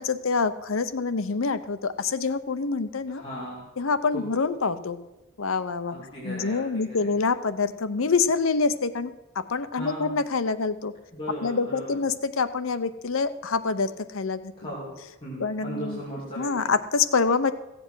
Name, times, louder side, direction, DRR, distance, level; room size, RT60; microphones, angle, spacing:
voice 1, 0.0-3.2 3.8-5.0 5.4-5.9 6.2-10.9 11.4-14.5 15.4-16.0 16.4-17.5, left 4 dB, 85° left, 11 dB, 0.7 m, -26 dB
voice 2, 3.1-3.6 4.1-4.2 5.9-7.1 9.7-10.2 11.1-12.0 14.6-14.9 15.2-16.7, equal, 25° left, -8 dB, 2.9 m, -37 dB
15.0 x 7.9 x 6.2 m, 1.0 s
head